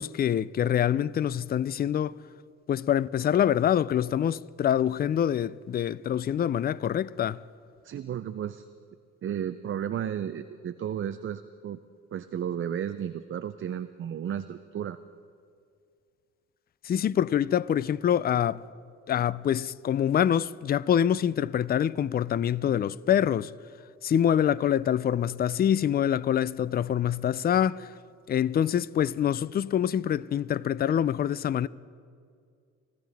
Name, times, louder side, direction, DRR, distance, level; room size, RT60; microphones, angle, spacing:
voice 1, 0.0-2.2 2.7-7.4 16.8-18.6 19.1-23.5 24.0-27.9 28.3-31.7, left 9 dB, 35° left, 0.4 m, -25 dB
voice 2, 7.8-8.7 9.2-11.8 12.1-15.0, right 9 dB, 45° right, 0.5 m, -33 dB
25.5 x 14.5 x 3.5 m
cardioid pair, 90°, 30 cm